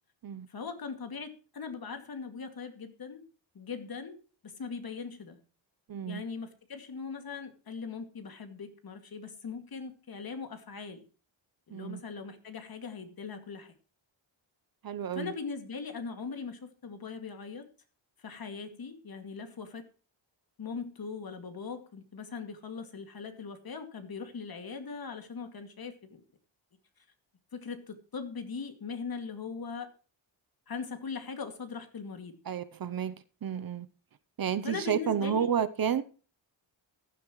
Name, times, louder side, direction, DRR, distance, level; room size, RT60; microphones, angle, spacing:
voice 1, 0.5-3.2 3.5-4.2 4.4-5.4 6.1-11.0 11.7-13.7 15.1-17.6 18.2-19.9 20.6-26.2 27.5-29.9 30.7-32.3 34.6-35.5, left 5 dB, 50° left, 2.3 m, -40 dB
voice 2, 5.9-6.2 11.7-12.0 14.8-15.3 32.5-33.1 33.4-33.9 34.4-36.0, right 8 dB, 50° right, 0.8 m, -31 dB
15.0 x 11.0 x 3.1 m
wide cardioid pair, 125°, 47 cm